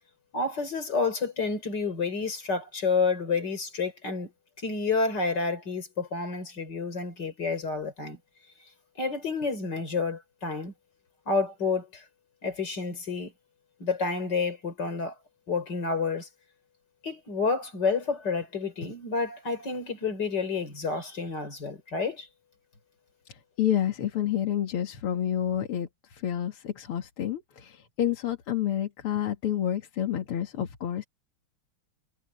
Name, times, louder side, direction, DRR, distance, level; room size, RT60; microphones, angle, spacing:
voice 1, 0.3-4.3 4.6-8.2 9.0-10.7 11.3-12.0 12.4-13.3 13.8-15.1 15.5-16.3 17.0-22.3, left 4 dB, 50° left, 4.7 m, -29 dB
voice 2, 23.3-31.0, left 10 dB, 85° left, 2.7 m, -29 dB
omnidirectional pair, 2.4 m